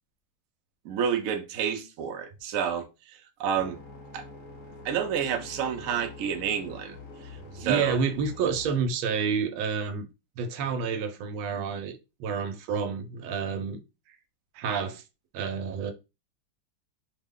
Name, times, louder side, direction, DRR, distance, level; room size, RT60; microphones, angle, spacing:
voice 1, 0.8-3.8 4.1-4.2 4.8-7.0 7.5-8.0, right 8 dB, 75° right, 0.7 m, -29 dB
sound 1, 3.5-8.7, left 3 dB, 50° left, 1.1 m, -45 dB
voice 2, 7.6-10.0 10.4-13.8 14.5-15.0 15.3-15.9, right 5 dB, 90° right, 1.5 m, -29 dB
3.4 x 2.2 x 3.6 m
omnidirectional pair, 2.2 m